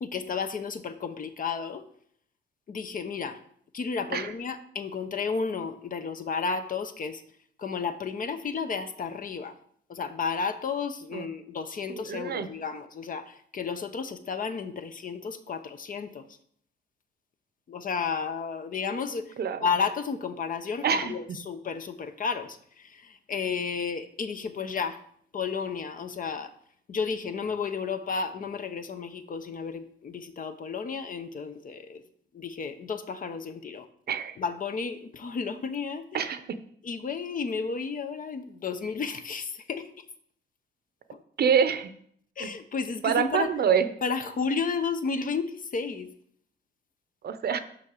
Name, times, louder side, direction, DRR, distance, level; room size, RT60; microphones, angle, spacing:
voice 1, 0.0-1.8 2.7-3.4 3.7-7.2 7.6-9.5 9.9-13.2 13.5-16.2 17.7-19.3 19.6-22.5 23.3-25.0 25.3-26.5 26.9-32.0 32.3-33.9 34.4-36.0 36.8-39.8 42.4-43.5 44.0-46.1, left 5 dB, 45° left, 9 dB, 0.9 m, -32 dB
voice 2, 11.9-12.5 19.4-19.7 20.8-21.1 34.1-34.4 36.1-36.4 41.4-41.9 42.4-42.5 43.0-43.9 47.2-47.6, right 7 dB, 55° right, 11 dB, 0.8 m, -26 dB
6.3 x 5.6 x 6.5 m, 0.64 s
cardioid pair, 90°, 20 cm